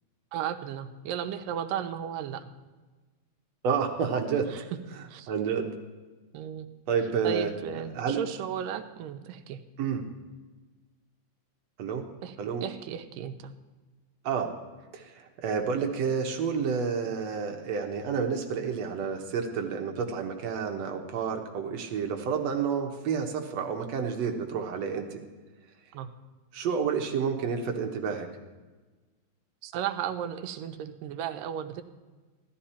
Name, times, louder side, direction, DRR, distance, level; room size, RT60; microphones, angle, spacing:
voice 1, 0.3-2.5 4.5-4.6 5.1-5.3 6.3-6.7 7.2-9.6 12.2-12.4 12.6-13.5 25.9-26.1 29.6-31.8, right 9 dB, 85° right, 8 dB, 2.4 m, -34 dB
voice 2, 3.6-4.5 5.3-5.8 6.9-7.5 7.9-8.2 9.8-10.1 11.8-12.0 12.4-12.7 14.2-14.5 14.9-25.2 26.5-28.3, right 6 dB, 65° right, 4 dB, 1.9 m, -29 dB
16.5 x 12.5 x 4.4 m, 1.3 s
omnidirectional pair, 3.9 m